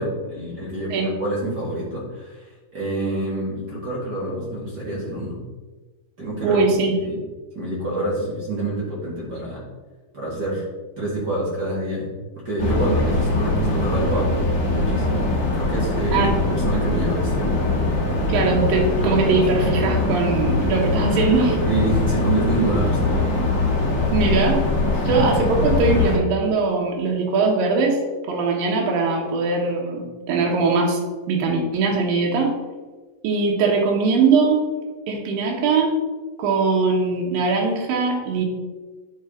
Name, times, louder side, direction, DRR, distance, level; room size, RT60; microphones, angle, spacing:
voice 1, 0.0-2.5 2.7-5.4 6.2-6.6 7.0-7.2 7.6-9.6 10.1-10.7 11.0-12.1 12.4-14.4 14.7-15.3 15.5-17.6 21.7-23.4 24.9-25.2, right 2 dB, 35° right, -6 dB, 2.0 m, -27 dB
voice 2, 6.4-7.0 16.1-16.3 18.3-21.6 24.1-24.6 25.1-28.0 28.3-31.0 31.3-32.5 33.2-34.7 35.1-36.0 36.4-38.5, right 4 dB, 80° right, -1 dB, 2.9 m, -21 dB
sound 1, 12.6-26.2, left 2 dB, 70° left, 0.8 m, -22 dB
10.0 x 5.0 x 3.8 m, 1.3 s
omnidirectional pair, 4.0 m